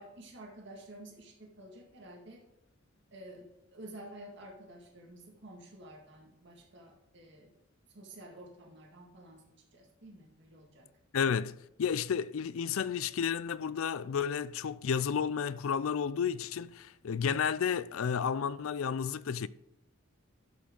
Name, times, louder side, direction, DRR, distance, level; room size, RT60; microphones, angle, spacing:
voice 1, 0.0-2.4 3.1-3.4 3.7-7.5 7.9-9.4 9.7-10.8, right 1 dB, 55° right, 2.0 m, -50 dB
voice 2, 11.1-19.5, left 7 dB, 75° left, 0.4 m, -32 dB
12.5 x 6.1 x 3.8 m
head